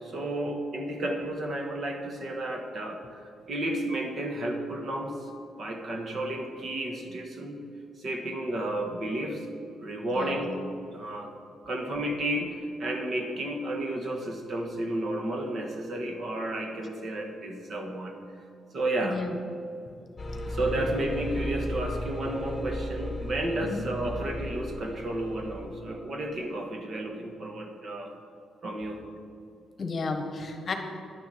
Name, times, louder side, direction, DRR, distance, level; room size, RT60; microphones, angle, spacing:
voice 1, 0.0-3.2 3.5-5.2 5.6-7.6 8.0-9.4 9.8-10.6 10.9-11.3 11.6-18.2 18.7-19.3 20.5-28.1 28.6-29.0, right 1 dB, 45° right, 3 dB, 1.4 m, -32 dB
voice 2, 10.2-10.5 19.0-19.3 20.8-20.9 23.6-23.9 29.8-30.7, left 4 dB, 40° left, 5 dB, 1.2 m, -33 dB
sound 1, 20.2-25.9, equal, 15° left, 1.6 m, -35 dB
10.5 x 7.1 x 7.7 m, 2.5 s
cardioid pair, 125°, 0 cm